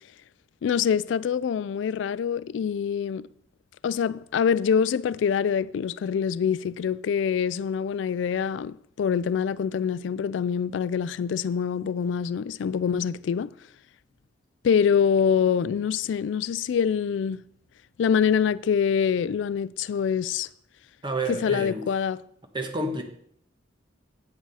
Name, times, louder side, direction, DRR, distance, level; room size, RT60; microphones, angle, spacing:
voice 1, 0.6-3.3 3.8-13.5 14.6-17.4 18.0-20.5 21.3-22.2, left 7 dB, 75° left, 0.3 m, -25 dB
voice 2, 21.0-21.9 22.5-23.0, right 2 dB, 25° right, 1.3 m, -29 dB
8.6 x 7.2 x 5.5 m
head